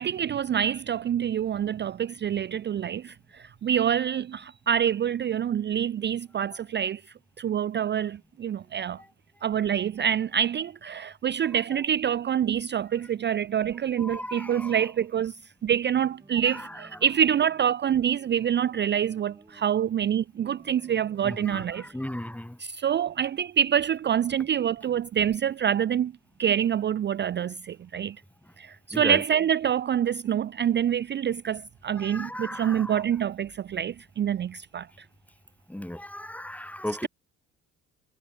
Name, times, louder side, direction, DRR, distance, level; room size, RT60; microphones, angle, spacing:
voice 1, 0.0-7.0 7.4-9.0 9.4-21.9 22.6-26.1 26.4-28.2 28.6-35.1, right 9 dB, 35° right, 0.4 m, -26 dB
voice 2, 14.0-14.9 16.4-16.8 21.2-22.6 28.4-28.5 28.9-29.2 32.0-33.0 35.7-37.1, left 1 dB, 5° left, 1.4 m, -36 dB
sound 1, 16.2-17.7 18.3-19.9 20.4-22.3, right 2 dB, 15° right, 6.3 m, -56 dB
cardioid pair, 90°, 30 cm